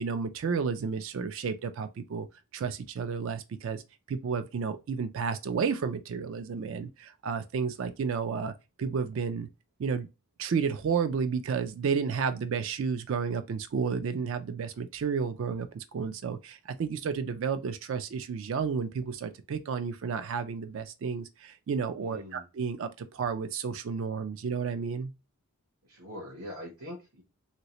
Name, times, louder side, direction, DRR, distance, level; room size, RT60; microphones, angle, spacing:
voice 1, 0.0-2.3 2.5-3.8 4.1-8.5 8.8-9.5 9.8-10.1 10.4-25.1, right 6 dB, 60° right, 0.3 m, -31 dB
voice 2, 22.0-22.5 25.8-27.2, left 1 dB, 85° right, 1.0 m, -43 dB
3.1 x 2.9 x 2.9 m
head